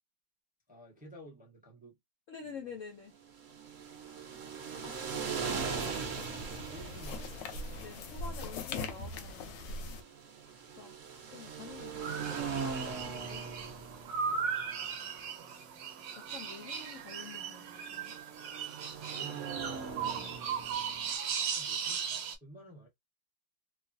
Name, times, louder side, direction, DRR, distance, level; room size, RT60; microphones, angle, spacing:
voice 1, 0.7-2.0 2.4-2.8 6.7-7.7 14.3-14.5 19.0-19.8 21.5-22.9, right 1 dB, 5° right, 0.7 m, -53 dB
voice 2, 2.3-3.1 4.8-5.6 5.9-6.3 6.8-6.9 7.8-10.0 10.7-11.0 11.3-13.5 15.5-15.6 16.1-18.2 20.0-20.4, left 6 dB, 65° left, 0.8 m, -49 dB
sound 1, 3.2-21.1, right 5 dB, 55° right, 1.0 m, -41 dB
sound 2, 5.5-10.0, left 3 dB, 85° left, 1.3 m, -41 dB
sound 3, 12.0-22.4, right 6 dB, 80° right, 1.3 m, -37 dB
3.1 x 2.2 x 2.6 m
omnidirectional pair, 1.9 m